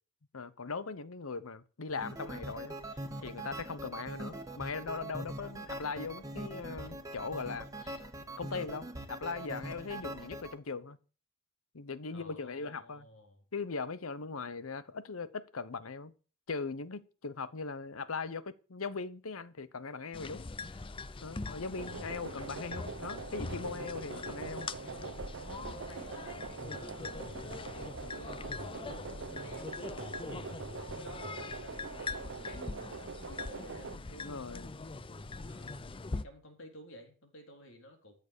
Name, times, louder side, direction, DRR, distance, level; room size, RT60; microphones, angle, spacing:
voice 1, 0.3-8.0 8.4-11.0 11.7-13.1 13.5-16.1 16.5-20.4 20.7-20.8 21.2-24.7 34.2-34.7, left 4 dB, 90° left, 0.9 m, -40 dB
sound 1, 1.9-10.5, right 1 dB, 15° right, 1.5 m, -43 dB
voice 2, 12.1-13.4 24.1-24.4 24.8-28.7 29.2-34.4 35.4-38.1, left 1 dB, 65° left, 3.9 m, -54 dB
sound 2, 20.1-36.2, left 3 dB, 25° left, 0.5 m, -42 dB
sound 3, 21.7-34.0, right 5 dB, 65° right, 0.7 m, -44 dB
13.5 x 6.9 x 6.7 m
head